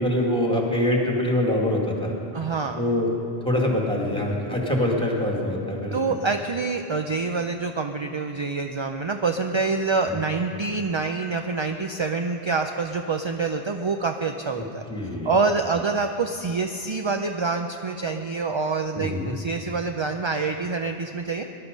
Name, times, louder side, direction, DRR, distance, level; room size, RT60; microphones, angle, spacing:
voice 1, 0.0-2.1 2.8-3.1 3.4-6.0 14.6-14.7 14.9-15.3 18.9-19.3, left 1 dB, 5° left, -1 dB, 2.1 m, -24 dB
voice 2, 2.3-2.8 5.9-14.8 15.2-21.5, right 4 dB, 40° right, 5 dB, 0.4 m, -26 dB
20.5 x 11.5 x 5.3 m, 2.8 s
omnidirectional pair, 1.1 m